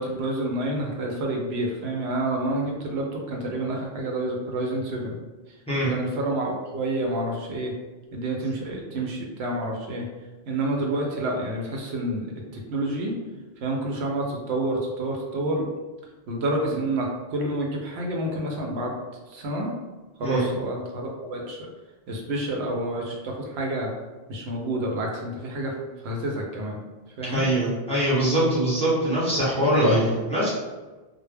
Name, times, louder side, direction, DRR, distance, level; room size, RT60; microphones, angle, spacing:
voice 1, 0.0-5.2 5.9-7.8 8.1-10.1 10.5-12.3 12.5-13.2 13.6-15.7 16.3-19.0 19.3-19.7 20.2-21.7 22.1-23.9 24.3-25.8 26.0-26.8 27.2-27.5, right 1 dB, 85° right, 0 dB, 0.8 m, -28 dB
voice 2, 27.3-30.5, right 1 dB, 5° left, -8 dB, 0.6 m, -22 dB
2.1 x 2.1 x 3.2 m, 1.2 s
omnidirectional pair, 1.0 m